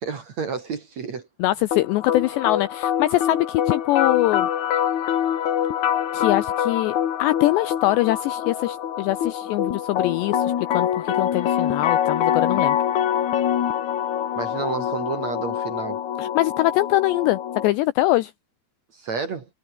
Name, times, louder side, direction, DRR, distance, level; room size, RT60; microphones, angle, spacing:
voice 1, 0.0-1.2 14.4-16.0 18.9-19.5, right 5 dB, 45° right, 2.8 m, -30 dB
voice 2, 1.4-4.5 6.1-12.8 16.2-18.3, left 17 dB, 80° left, 2.5 m, -23 dB
sound 1, 1.7-17.7, left 10 dB, 55° left, 2.2 m, -25 dB
omnidirectional pair, 5.7 m